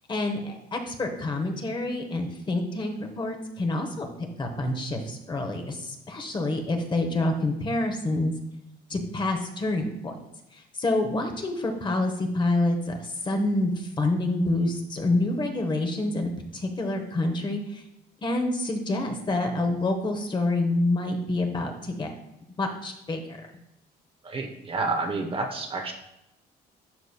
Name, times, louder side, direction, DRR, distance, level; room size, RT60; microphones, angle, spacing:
voice 1, 0.1-4.1 4.4-8.3 8.9-10.2 10.5-17.8 18.2-22.1 22.6-23.5, left 2 dB, 30° left, 4 dB, 1.0 m, -27 dB
voice 2, 24.2-25.9, right 3 dB, 35° right, 4 dB, 0.9 m, -29 dB
11.5 x 4.0 x 2.2 m, 0.87 s
cardioid pair, 110°, 17 cm